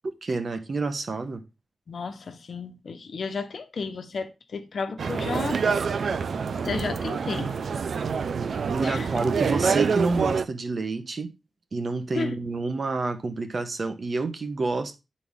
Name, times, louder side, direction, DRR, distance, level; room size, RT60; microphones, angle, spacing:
voice 1, 0.2-1.4 8.7-11.3 11.7-15.0, right 3 dB, 50° right, 1.1 m, -28 dB
voice 2, 1.9-5.6 6.6-7.5 8.8-9.1 12.1-12.4, left 4 dB, 65° left, 1.1 m, -33 dB
sound 1, 5.0-10.5, right 5 dB, 75° right, 0.6 m, -26 dB
11.0 x 4.3 x 3.6 m
wide cardioid pair, 125°, 0 cm